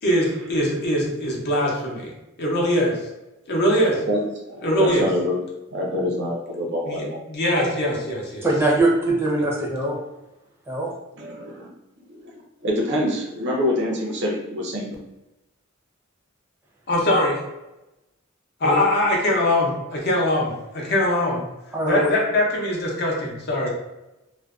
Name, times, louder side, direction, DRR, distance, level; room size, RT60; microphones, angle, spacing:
voice 1, 0.0-2.1 2.4-3.0 3.5-4.0 4.6-5.1 6.9-8.4 16.9-17.4 18.6-21.4 21.8-23.7, left 1 dB, 50° left, -2 dB, 0.6 m, -22 dB
voice 2, 3.8-5.4 5.7-7.2 11.2-11.7 12.1-15.0, left 1 dB, 60° right, 0 dB, 0.6 m, -26 dB
voice 3, 8.4-10.0 10.7-10.9 18.6-18.7 21.7-22.1, right 2 dB, 10° right, -4 dB, 0.5 m, -21 dB
2.5 x 2.1 x 2.3 m, 0.95 s
head